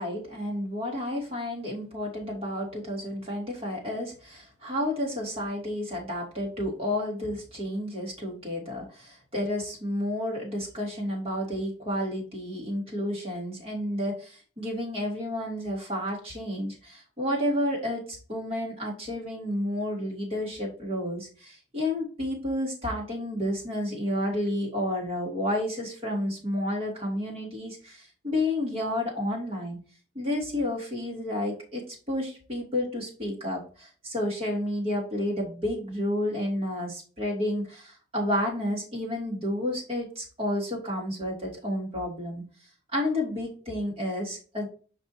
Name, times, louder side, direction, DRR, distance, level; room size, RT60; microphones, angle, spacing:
voice 1, 0.0-29.8 30.1-42.4 42.9-44.7, left 1 dB, 30° right, -3 dB, 2.7 m, -31 dB
6.2 x 5.4 x 2.9 m, 0.37 s
head